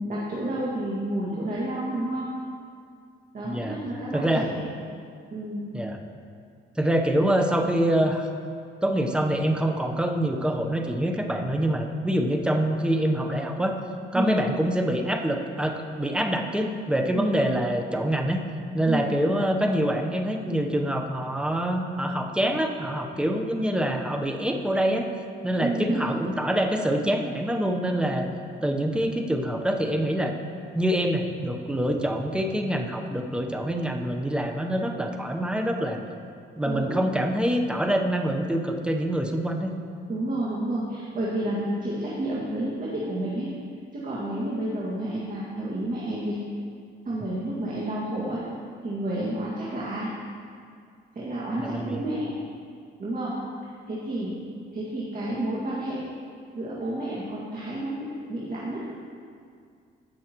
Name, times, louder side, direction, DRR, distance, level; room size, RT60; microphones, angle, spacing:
voice 1, 0.0-2.3 3.3-4.7 5.3-5.6 14.1-14.3 17.1-17.3 18.8-19.1 25.6-26.2 36.6-37.0 40.1-43.5 43.9-46.4 47.1-48.4 48.8-50.1 51.2-52.3 53.0-53.3 53.6-54.3 54.7-56.0 56.5-58.9, right 1 dB, 40° right, -7 dB, 2.0 m, -30 dB
voice 2, 4.1-4.5 5.7-6.0 6.8-8.3 8.8-13.8 14.1-18.4 18.7-25.1 25.4-28.3 28.6-30.3 30.7-36.0 36.6-39.7 51.6-52.0, right 1 dB, 5° right, 3 dB, 0.9 m, -25 dB
16.5 x 6.3 x 3.0 m, 2.2 s
cardioid pair, 90°, 20 cm